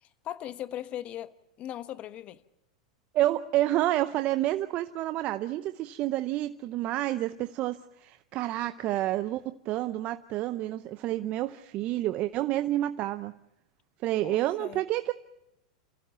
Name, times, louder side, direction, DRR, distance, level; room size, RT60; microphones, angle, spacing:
voice 1, 0.0-1.3 1.6-2.4 14.2-14.8, left 12 dB, 40° left, 12 dB, 1.2 m, -39 dB
voice 2, 3.1-13.3 14.0-15.1, right 14 dB, 45° right, 11 dB, 0.7 m, -29 dB
28.5 x 15.5 x 6.9 m, 0.84 s
hypercardioid pair, 105°, 3 cm